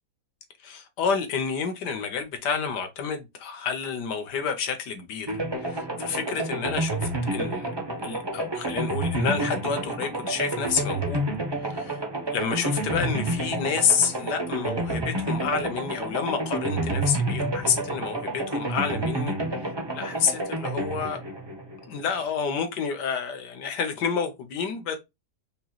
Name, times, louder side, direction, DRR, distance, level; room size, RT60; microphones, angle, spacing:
voice 1, 0.6-7.7 8.0-11.2 11.5-12.0 12.3-19.3 19.6-21.2 21.9-25.0, left 6 dB, 75° left, 1.5 m, -29 dB
sound 1, 5.3-22.2, right 1 dB, 25° right, 0.6 m, -29 dB
5.2 x 3.0 x 2.3 m
omnidirectional pair, 1.8 m